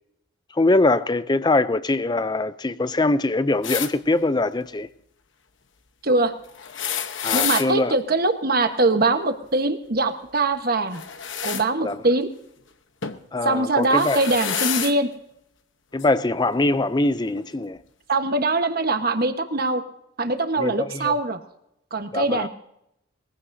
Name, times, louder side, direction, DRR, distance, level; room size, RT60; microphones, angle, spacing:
voice 1, 0.5-4.9 7.2-7.9 11.8-12.0 13.3-14.2 15.9-17.8 20.6-21.1 22.1-22.5, left 2 dB, 20° left, 0.4 m, -22 dB
sound 1, 3.6-3.9 6.5-7.7 10.9-11.7 13.0-13.2 13.8-15.0 16.0-16.1 17.3-17.4, left 8 dB, 60° left, 1.0 m, -28 dB
voice 2, 6.0-6.3 7.3-11.0 11.4-12.3 13.4-15.1 18.1-19.8 20.2-21.4 21.9-22.5, right 2 dB, 45° right, 1.2 m, -22 dB
21.5 x 15.5 x 2.7 m
head